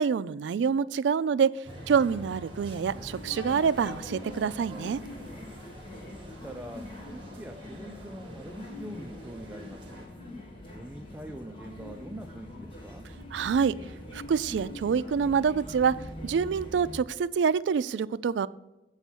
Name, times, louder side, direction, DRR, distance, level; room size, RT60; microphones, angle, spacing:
voice 1, 0.0-5.0 13.3-13.8 14.1-16.0 16.2-18.5, right 6 dB, 80° right, 17 dB, 0.3 m, -26 dB
sound 1, 1.6-10.1, right 1 dB, 30° right, 2.0 m, -46 dB
sound 2, 2.8-17.0, left 1 dB, 30° left, 1.7 m, -44 dB
voice 2, 5.7-10.1 10.6-13.1, equal, 10° right, 4 dB, 0.4 m, -44 dB
8.1 x 5.6 x 6.1 m, 1.0 s
head